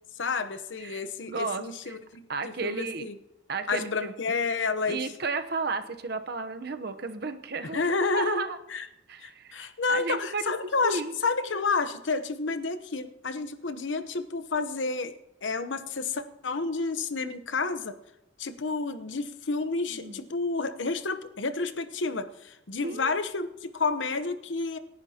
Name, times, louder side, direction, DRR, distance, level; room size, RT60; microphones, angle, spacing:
voice 1, 0.2-3.2 3.7-5.1 7.6-8.4 8.7-8.9 9.2-15.1 15.4-18.0 18.4-24.8, left 4 dB, 80° left, 9 dB, 0.9 m, -30 dB
voice 2, 0.8-2.0 2.3-3.1 3.5-4.1 4.9-8.6 9.1-10.5 10.8-11.1 17.2-17.3 19.9-20.2 22.8-23.1, right 4 dB, 55° right, 8 dB, 0.9 m, -33 dB
27.5 x 10.5 x 2.9 m, 0.91 s
head